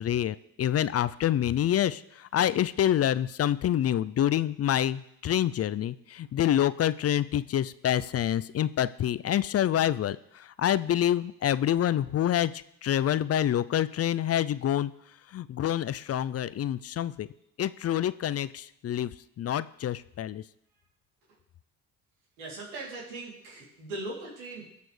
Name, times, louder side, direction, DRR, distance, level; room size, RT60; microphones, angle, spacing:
voice 1, 0.0-14.9 15.3-17.3 17.6-19.1 19.4-20.4, left 11 dB, 35° left, 16 dB, 0.4 m, -27 dB
voice 2, 22.4-24.7, right 2 dB, 90° right, -4 dB, 3.1 m, -39 dB
20.0 x 6.9 x 3.3 m, 0.83 s
hypercardioid pair, 60°, 43 cm